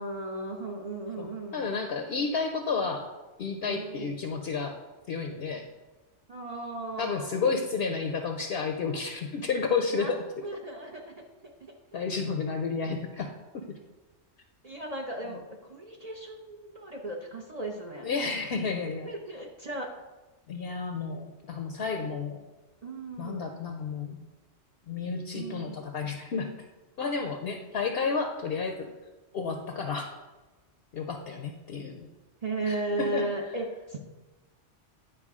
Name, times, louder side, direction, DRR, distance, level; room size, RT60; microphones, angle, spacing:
voice 1, 0.0-1.7 3.6-4.1 6.3-7.4 9.9-10.2 10.4-11.1 11.4-11.7 14.6-15.4 15.7-18.1 18.9-19.9 22.8-23.5 25.3-25.8 32.4-34.0, right 2 dB, 40° right, 0 dB, 0.7 m, -36 dB
voice 2, 1.2-3.0 3.4-4.8 5.1-5.7 7.0-10.2 11.9-13.8 15.3-15.4 18.0-19.1 20.5-22.4 23.2-24.2 24.9-26.5 27.0-28.9 29.3-30.1 30.9-32.1 32.7-33.2, left 5 dB, 60° left, 4 dB, 0.8 m, -31 dB
10.0 x 4.5 x 3.6 m, 1.2 s
omnidirectional pair, 1.2 m